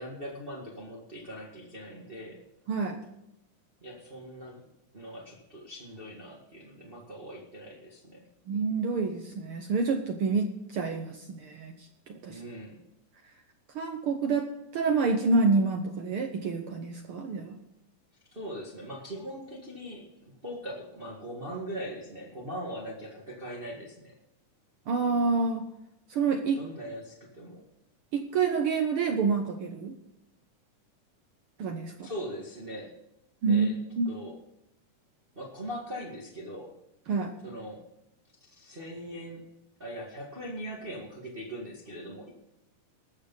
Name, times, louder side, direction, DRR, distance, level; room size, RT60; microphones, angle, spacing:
voice 1, 0.0-2.4 3.8-4.6 4.9-8.2 12.3-12.8 18.3-24.1 26.5-27.6 32.0-32.9 33.5-33.7 34.1-34.3 35.3-36.7 37.4-37.8 38.5-39.4 39.8-42.3, equal, 25° right, -2 dB, 1.4 m, -41 dB
voice 2, 2.7-3.0 8.5-11.7 12.1-12.4 13.7-17.6 24.9-25.6 26.1-26.6 28.1-29.9 31.6-32.1 33.4-33.7 34.0-34.1 37.1-37.3, right 4 dB, 80° right, 4 dB, 1.2 m, -28 dB
19.5 x 6.8 x 5.4 m, 0.86 s
omnidirectional pair, 3.7 m